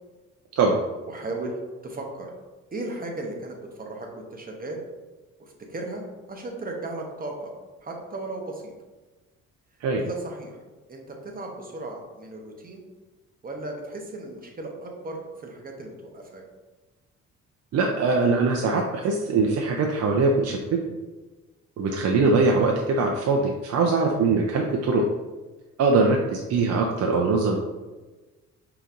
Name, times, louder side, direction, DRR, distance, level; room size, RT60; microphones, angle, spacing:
voice 1, 1.1-1.6 1.8-2.3 2.7-4.8 5.4-6.0 6.3-7.5 7.8-8.7 10.0-10.6 10.9-12.8 13.4-16.4, right 2 dB, 30° right, 1 dB, 0.8 m, -36 dB
voice 2, 17.7-20.8 21.8-25.0 25.8-27.6, right 3 dB, 60° right, 1 dB, 0.5 m, -22 dB
5.0 x 2.9 x 2.5 m, 1.2 s
cardioid pair, 90°, 30 cm